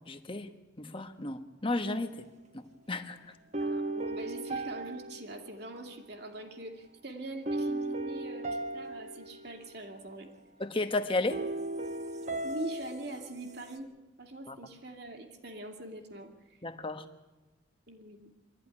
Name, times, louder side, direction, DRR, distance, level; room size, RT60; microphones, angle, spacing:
voice 1, 0.1-0.5 0.8-2.3 2.5-3.2 10.6-11.4 14.5-14.6 16.6-17.0, left 2 dB, 25° left, 7 dB, 1.2 m, -33 dB
sound 1, 3.5-6.1 7.5-9.9 11.3-13.8, right 2 dB, 35° right, 1.2 m, -36 dB
voice 2, 3.6-10.3 12.4-13.9 14.2-16.6 17.9-18.3, right 2 dB, 55° right, 4 dB, 2.4 m, -43 dB
24.0 x 13.5 x 9.9 m, 1.2 s
head